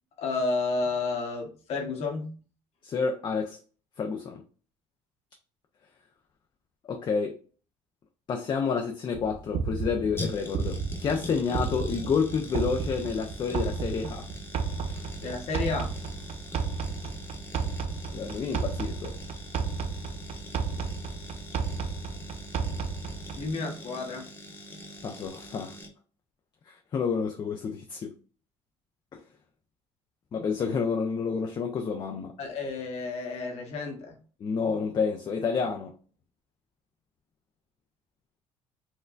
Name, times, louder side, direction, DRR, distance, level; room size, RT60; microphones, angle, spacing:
voice 1, 0.2-2.4 15.2-15.9 17.8-17.9 23.4-24.3 32.4-34.2, left 3 dB, 65° left, 1.2 m, -31 dB
voice 2, 2.8-3.6 4.0-4.4 6.8-7.4 8.3-14.3 14.9-15.0 18.1-19.1 25.0-25.7 26.7-28.1 29.1-29.2 30.3-32.3 34.4-35.9, left 5 dB, 40° left, 0.5 m, -29 dB
sound 1, 9.1-23.5, right 5 dB, 60° right, 0.5 m, -33 dB
sound 2, 9.3-25.9, left 1 dB, 20° left, 1.0 m, -44 dB
4.4 x 2.2 x 2.5 m
cardioid pair, 100°, 12 cm